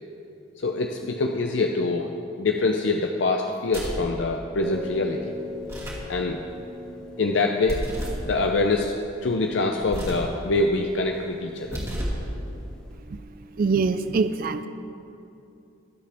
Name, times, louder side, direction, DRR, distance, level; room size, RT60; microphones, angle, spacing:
voice 1, 0.6-2.1 2.4-5.3 6.1-6.4 7.2-7.8 8.2-11.8, left 3 dB, 70° left, 3 dB, 0.6 m, -25 dB
sound 1, 3.6-4.1 5.6-6.1 7.6-8.3 9.8-10.3 11.6-12.3, equal, 15° right, 2.2 m, -31 dB
sound 2, 4.6-13.0, left 3 dB, 5° left, 1.2 m, -42 dB
voice 2, 13.6-14.7, right 4 dB, 45° right, 11 dB, 0.3 m, -24 dB
22.5 x 7.5 x 3.5 m, 2.8 s
head